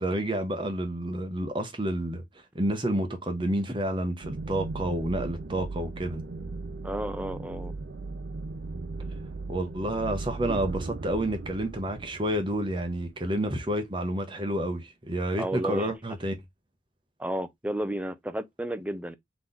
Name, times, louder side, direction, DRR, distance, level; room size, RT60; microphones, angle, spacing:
voice 1, 0.0-2.2 2.5-6.2 9.5-16.4, right 1 dB, 25° right, 0.8 m, -29 dB
sound 1, 4.2-13.5, right 3 dB, 65° right, 0.5 m, -37 dB
voice 2, 6.8-7.7 15.4-15.9 17.2-19.2, right 1 dB, 10° right, 0.4 m, -32 dB
3.8 x 3.0 x 3.8 m
head